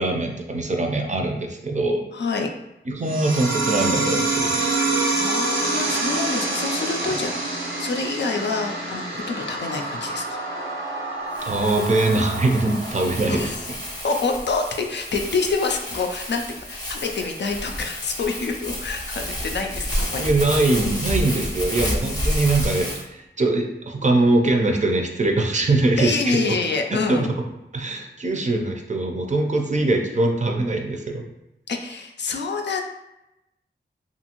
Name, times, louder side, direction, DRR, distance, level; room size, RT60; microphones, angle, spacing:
voice 1, 0.0-2.0 2.9-4.6 7.0-7.1 11.5-13.7 20.2-26.5 26.9-27.3 27.7-31.3, right 2 dB, 40° right, 2 dB, 0.5 m, -22 dB
voice 2, 2.1-2.5 5.1-10.4 13.3-13.6 14.0-20.3 26.0-27.3 31.7-32.8, left 4 dB, 65° left, 3 dB, 0.4 m, -27 dB
sound 1, 3.0-14.1, right 3 dB, 90° right, 0.6 m, -27 dB
Crumpling crinkling, 11.3-23.0, equal, 20° left, 0.7 m, -30 dB
2.6 x 2.5 x 2.9 m, 0.91 s
cardioid pair, 45°, 19 cm